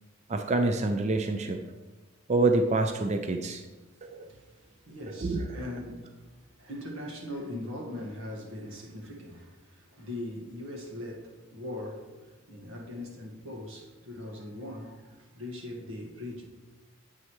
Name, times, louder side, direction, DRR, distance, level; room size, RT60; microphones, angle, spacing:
voice 1, 0.3-1.6 2.3-3.6 4.1-4.3 5.2-5.5, right 2 dB, 35° right, 0.4 m, -26 dB
voice 2, 4.1-6.3 6.6-16.5, left 1 dB, 90° right, 1.6 m, -41 dB
9.6 x 8.3 x 3.1 m
head